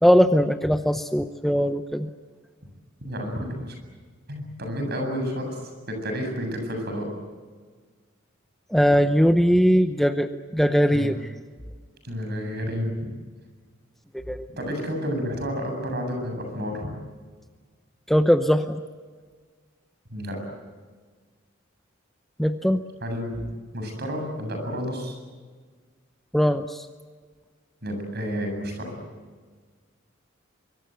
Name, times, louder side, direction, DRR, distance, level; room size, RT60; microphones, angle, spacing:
voice 1, 0.0-2.1 8.7-11.2 14.3-14.5 18.1-18.8 22.4-22.8 26.3-26.9, equal, ahead, 7 dB, 0.7 m, -20 dB
voice 2, 3.0-3.8 4.3-7.1 10.9-11.1 12.0-13.1 14.6-16.9 20.1-20.4 23.0-23.4 23.7-25.2 27.8-28.9, equal, 55° right, 4 dB, 7.8 m, -30 dB
25.0 x 24.5 x 7.9 m, 1.5 s
head